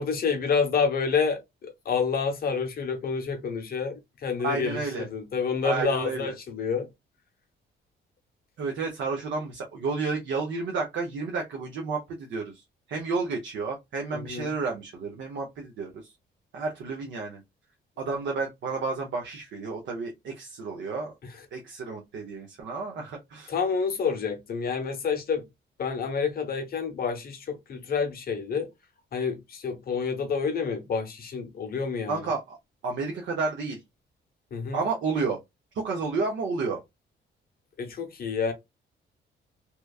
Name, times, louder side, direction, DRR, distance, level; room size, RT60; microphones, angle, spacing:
voice 1, 0.0-6.9 14.1-14.5 21.2-21.4 23.5-25.4 25.8-28.7 29.1-32.3 34.5-34.8 37.8-38.5, left 5 dB, 50° left, 0.8 m, -28 dB
voice 2, 4.4-5.1 5.6-6.3 8.6-12.6 12.9-16.1 16.5-17.4 18.0-21.1 21.5-23.5 32.1-32.6 32.8-33.8 34.7-35.4 35.7-36.8, right 4 dB, 70° right, 0.7 m, -31 dB
2.9 x 2.3 x 2.3 m
cardioid pair, 125°, 20 cm